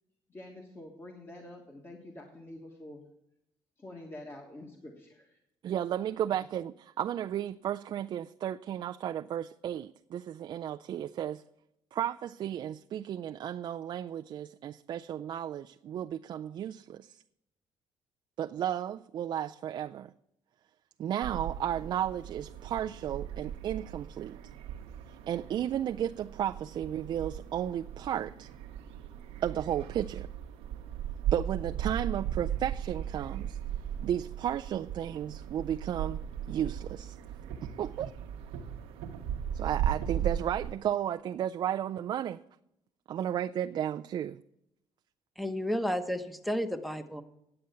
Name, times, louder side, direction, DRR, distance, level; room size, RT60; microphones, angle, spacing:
voice 1, 0.3-3.0 3.8-5.4, left 1 dB, 25° left, 1.5 m, -47 dB
voice 2, 5.6-11.4 11.9-17.2 18.4-20.1 21.0-24.4 25.1-28.5 29.4-30.3 31.3-33.6 34.0-36.2 36.5-37.2 37.6-38.1 39.5-42.4 43.1-44.4, right 10 dB, 50° right, 0.3 m, -33 dB
sound 1, 21.2-40.7, right 9 dB, 85° right, 0.9 m, -37 dB
voice 3, 45.4-47.2, equal, ahead, 0.9 m, -32 dB
9.7 x 7.7 x 6.8 m
cardioid pair, 90°, 10 cm